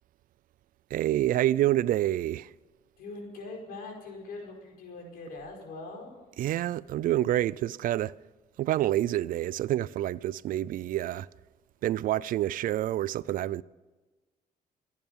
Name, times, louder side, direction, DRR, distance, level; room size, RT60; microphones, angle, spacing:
voice 1, 0.9-2.5 6.4-8.1 8.6-11.3 11.8-13.6, right 13 dB, 70° right, 0.5 m, -27 dB
voice 2, 3.0-6.1, left 3 dB, 90° left, 4.8 m, -42 dB
25.5 x 9.6 x 5.3 m
cardioid pair, 120°, 15 cm